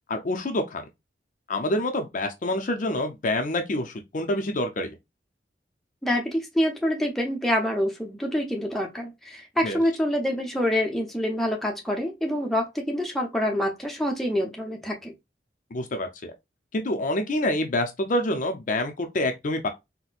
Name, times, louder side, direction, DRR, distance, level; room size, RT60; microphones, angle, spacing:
voice 1, 0.1-0.8 1.5-5.0 9.6-9.8 15.7-16.3 16.7-19.7, left 1 dB, 45° left, 0.5 m, -27 dB
voice 2, 6.0-15.1, equal, ahead, 0.7 m, -26 dB
4.1 x 2.1 x 2.4 m
head